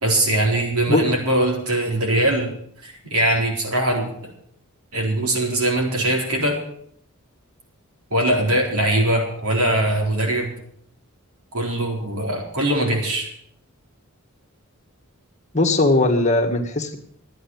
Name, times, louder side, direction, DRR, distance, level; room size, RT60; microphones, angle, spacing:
voice 1, 0.0-2.5 2.8-4.1 4.9-6.6 8.1-10.5 11.5-13.3, right 1 dB, 80° right, 0 dB, 4.2 m, -21 dB
voice 2, 15.5-17.0, left 2 dB, 35° left, 3 dB, 1.7 m, -19 dB
12.5 x 9.4 x 7.3 m, 0.68 s
head